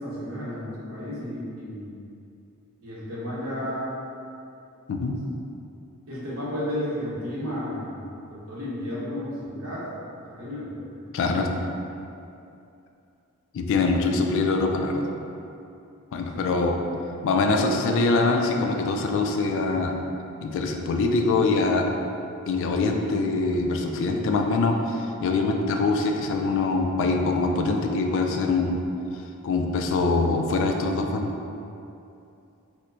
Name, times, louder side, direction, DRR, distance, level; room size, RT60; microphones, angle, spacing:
voice 1, 0.0-2.0 2.8-4.0 6.1-9.9 10.2-11.5 16.2-16.5, left 1 dB, 75° right, -8 dB, 0.9 m, -33 dB
voice 2, 11.1-11.5 13.5-15.1 16.1-16.8 17.2-20.0 20.4-21.9 22.5-28.8 29.4-31.3, left 3 dB, 60° left, 3 dB, 0.3 m, -24 dB
4.3 x 2.1 x 2.6 m, 2.7 s
head